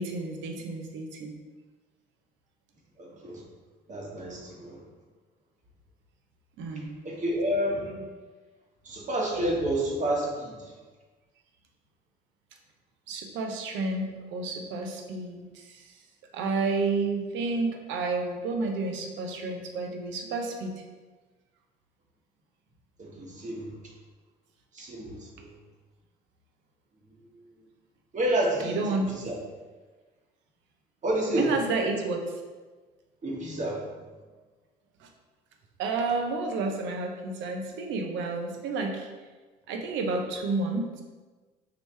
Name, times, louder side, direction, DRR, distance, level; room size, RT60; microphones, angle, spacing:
voice 1, 0.0-1.4 6.6-6.9 13.1-16.0 16.3-20.8 28.6-29.1 31.3-32.4 35.0-35.1 35.8-39.1 39.7-41.0, right 3 dB, 70° right, 3 dB, 0.7 m, -30 dB
voice 2, 3.0-3.4 3.9-4.8 7.0-8.0 8.8-10.7 23.0-23.7 24.7-25.5 28.1-29.0 29.2-29.4 31.0-31.5 33.2-33.8, right 1 dB, 35° right, -2 dB, 1.3 m, -29 dB
4.9 x 3.1 x 3.3 m, 1.3 s
supercardioid pair, 75°, 20 cm